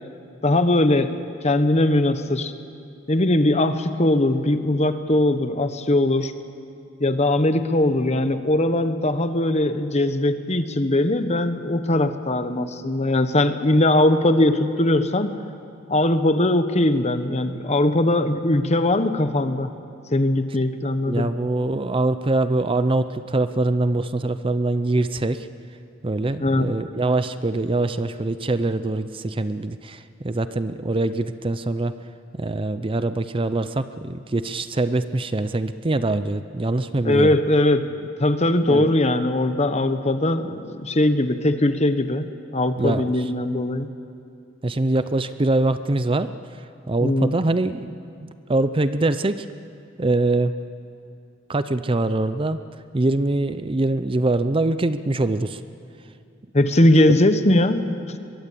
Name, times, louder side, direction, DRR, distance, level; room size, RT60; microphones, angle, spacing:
voice 1, 0.4-1.2 1.4-2.5 3.1-6.3 7.0-15.3 15.9-19.7 20.1-21.3 26.4-26.8 37.0-43.9 47.0-47.3 56.5-57.9, left 1 dB, 35° left, 10 dB, 1.1 m, -20 dB
voice 2, 21.1-25.5 26.0-31.9 32.3-37.4 38.7-38.9 42.8-43.1 44.6-46.3 46.9-49.5 50.0-50.6 51.5-52.6 52.9-55.6 56.9-57.0, right 2 dB, 25° right, 12 dB, 0.6 m, -23 dB
22.5 x 22.5 x 8.5 m, 2.5 s
head